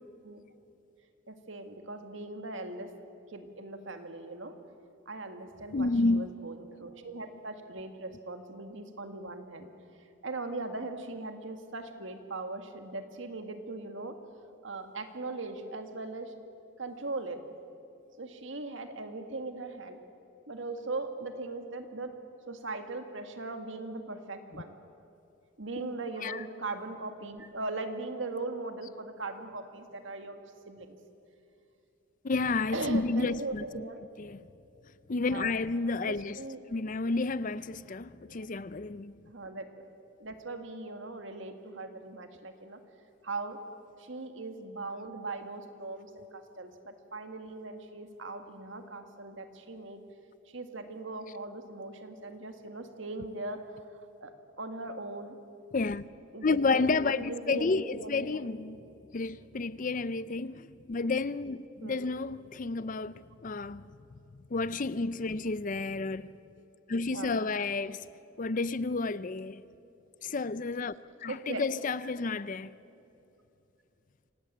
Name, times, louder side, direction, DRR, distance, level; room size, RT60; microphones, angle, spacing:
voice 1, 1.3-2.9 3.3-4.6 5.1-9.7 10.2-14.2 14.6-16.3 16.8-17.4 18.2-20.0 20.5-22.1 22.5-24.8 25.6-30.4 30.6-31.0 32.7-34.0 35.3-35.5 36.1-36.6 39.3-39.9 40.2-42.8 43.2-43.6 44.0-50.0 50.5-53.6 54.2-55.4 56.3-56.9 57.2-58.5 61.8-62.0 67.1-67.6 71.3-71.6, right 2 dB, 65° right, 2.0 m, -39 dB
voice 2, 5.7-6.3 25.8-25.9 26.2-26.4 32.2-33.8 34.2-34.4 35.1-36.4 36.7-39.1 55.7-56.0 56.4-58.8 59.1-63.9 64.5-66.3 66.9-68.0 68.4-69.6 70.2-70.9 71.2-72.7, left 3 dB, 40° left, 0.5 m, -31 dB
26.5 x 18.0 x 8.7 m
head